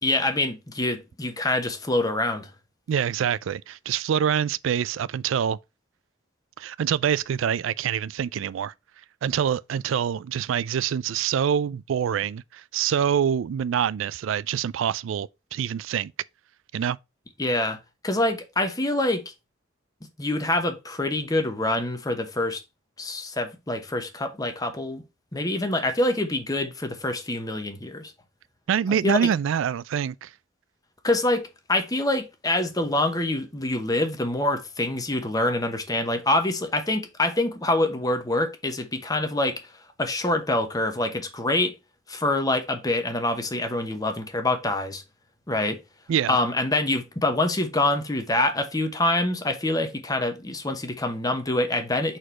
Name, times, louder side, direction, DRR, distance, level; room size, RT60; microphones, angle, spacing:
voice 1, 0.0-2.5 17.4-19.3 20.2-22.6 23.0-25.0 25.3-28.1 29.0-29.3 31.0-39.7 40.0-41.7 42.1-45.0 45.5-45.8 46.3-52.2, left 2 dB, 20° left, 0.9 m, -25 dB
voice 2, 2.9-5.6 6.6-8.7 9.2-16.1 16.7-17.0 28.7-30.3 46.1-46.4, right 8 dB, 75° right, 0.3 m, -25 dB
4.7 x 4.4 x 5.6 m
head